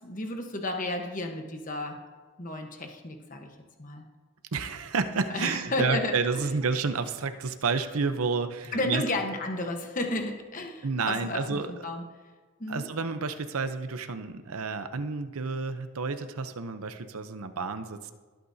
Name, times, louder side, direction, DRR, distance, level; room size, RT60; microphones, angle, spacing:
voice 1, 0.0-2.0 2.4-3.5 3.8-4.0 5.3-6.5 8.7-12.0 12.6-12.9, left 2 dB, 35° left, 3 dB, 1.1 m, -32 dB
voice 2, 4.5-9.0 10.8-11.7 12.7-18.1, right 4 dB, 80° right, 9 dB, 0.7 m, -30 dB
19.5 x 8.6 x 2.7 m, 1.3 s
head